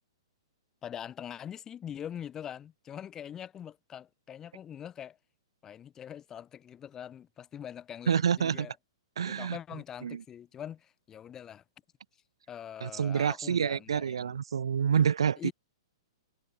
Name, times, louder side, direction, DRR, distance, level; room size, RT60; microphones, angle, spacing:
voice 1, 0.8-5.2 5.6-8.8 9.3-11.6 12.5-14.4 15.4-15.5, left 9 dB, 20° left, 4.2 m, -43 dB
voice 2, 8.1-8.7 9.2-9.6 10.0-10.2 12.8-15.5, right 7 dB, 85° right, 0.5 m, -28 dB
hypercardioid pair, 145°, 3 cm